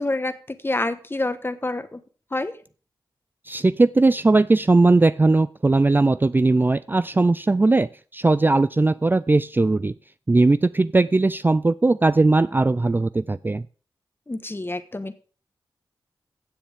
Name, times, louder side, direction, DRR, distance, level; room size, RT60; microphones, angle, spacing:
voice 1, 0.0-2.0 2.3-2.5 14.3-15.2, left 2 dB, 25° left, 11 dB, 1.3 m, -27 dB
voice 2, 3.5-9.9 10.3-13.6, right 3 dB, 25° right, 16 dB, 0.4 m, -19 dB
15.5 x 7.1 x 3.6 m, 0.40 s
cardioid pair, 40°, 9 cm